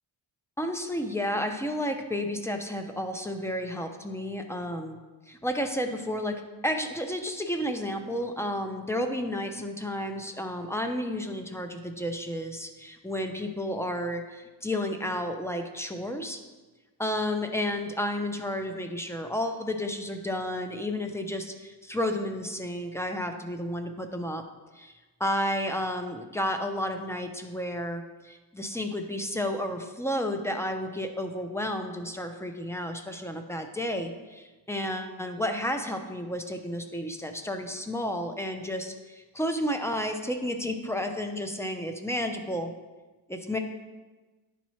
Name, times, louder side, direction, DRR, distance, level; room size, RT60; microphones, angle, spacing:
voice 1, 0.6-5.0 5.3-16.4 17.0-24.5 24.7-24.9 25.2-42.7 43.3-43.6, left 1 dB, 5° left, 5 dB, 0.4 m, -32 dB
10.0 x 4.2 x 3.1 m, 1.2 s
wide cardioid pair, 105°, 48 cm